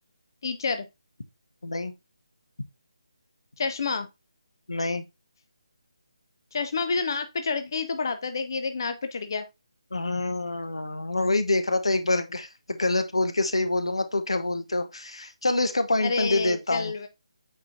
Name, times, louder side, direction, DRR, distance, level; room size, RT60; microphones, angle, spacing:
voice 1, 0.4-0.9 3.6-4.1 6.5-9.5 16.0-17.1, left 4 dB, 40° left, 0.6 m, -29 dB
voice 2, 4.7-5.0 9.9-16.9, left 2 dB, 65° left, 0.9 m, -26 dB
8.7 x 4.3 x 2.6 m
figure-of-eight pair, 150°, 3 cm